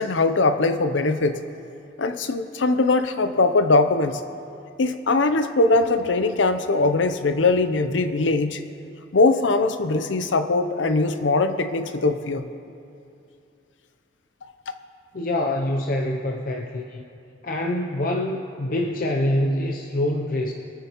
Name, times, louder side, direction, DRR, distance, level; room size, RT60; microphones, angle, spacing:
voice 1, 0.0-1.4 2.0-4.2 4.8-8.6 9.1-12.5, left 3 dB, 90° left, 9 dB, 0.7 m, -21 dB
voice 2, 15.1-17.1 17.4-20.5, left 1 dB, 50° left, 1 dB, 0.6 m, -25 dB
23.5 x 9.5 x 3.0 m, 2.6 s
head